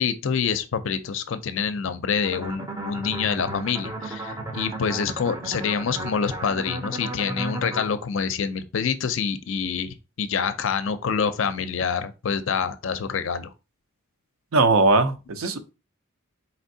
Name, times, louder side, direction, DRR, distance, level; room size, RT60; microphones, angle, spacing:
voice 1, 0.0-13.5, left 6 dB, 60° left, 0.4 m, -26 dB
sound 1, 2.2-7.9, right 2 dB, 15° right, 0.5 m, -34 dB
voice 2, 14.5-15.7, right 3 dB, 70° right, 0.6 m, -20 dB
4.2 x 3.4 x 2.7 m
head